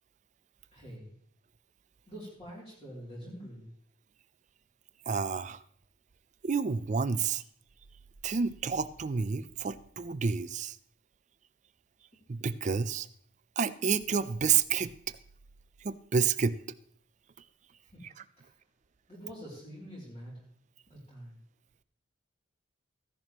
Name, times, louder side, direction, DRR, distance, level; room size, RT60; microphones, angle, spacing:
voice 1, 0.7-1.1 2.0-3.7 17.8-18.0 18.4-18.5 19.1-20.5 20.9-21.4, equal, 30° left, -6 dB, 3.0 m, -46 dB
voice 2, 5.1-5.6 6.4-7.4 8.2-10.8 12.3-13.1 13.6-15.2 15.8-16.6, right 6 dB, 40° right, 14 dB, 0.4 m, -29 dB
15.0 x 10.5 x 3.0 m, 0.62 s
head